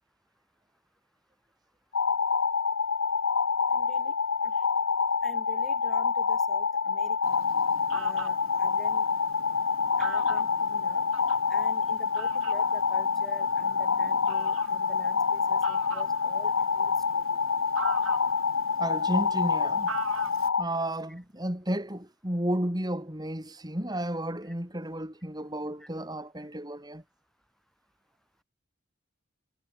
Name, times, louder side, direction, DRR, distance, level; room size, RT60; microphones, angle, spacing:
sound 1, 1.9-20.6, left 5 dB, 80° left, 1.0 m, -27 dB
voice 1, 3.7-4.1 4.4-4.6 5.2-7.5 7.9-9.1 10.0-11.0 11.5-17.4 24.5-24.6 25.8-25.9, equal, ahead, 4.1 m, -47 dB
Fowl, 7.2-20.5, right 5 dB, 75° right, 2.0 m, -44 dB
voice 2, 18.8-20.0 20.6-27.0, right 1 dB, 20° right, 3.8 m, -32 dB
head